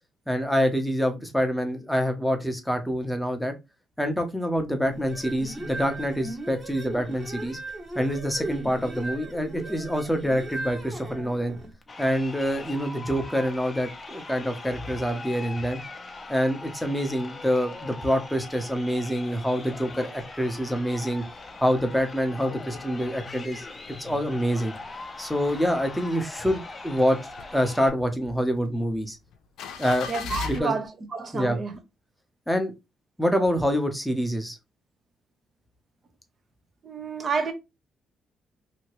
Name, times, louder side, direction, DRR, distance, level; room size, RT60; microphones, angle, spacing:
voice 1, 0.3-3.5 4.0-7.6 7.9-11.5 12.0-15.8 16.3-21.2 21.6-23.7 24.0-24.7 25.2-27.2 27.5-29.2 29.8-30.1 30.4-30.8 31.3-31.6 32.5-32.7 33.2-34.6, equal, ahead, 0.8 m, -26 dB
sound 1, 4.9-11.7, right 2 dB, 20° right, 1.2 m, -38 dB
Crowd, 11.8-27.9, left 3 dB, 30° left, 0.6 m, -41 dB
car approaching, 20.1-20.8 21.2-21.3 21.5-24.9 25.3-26.3 26.7-30.6, left 6 dB, 80° left, 0.5 m, -39 dB
voice 2, 30.1-31.8 36.8-37.5, right 4 dB, 40° right, 0.8 m, -29 dB
2.8 x 2.7 x 3.0 m
cardioid pair, 90°, 0 cm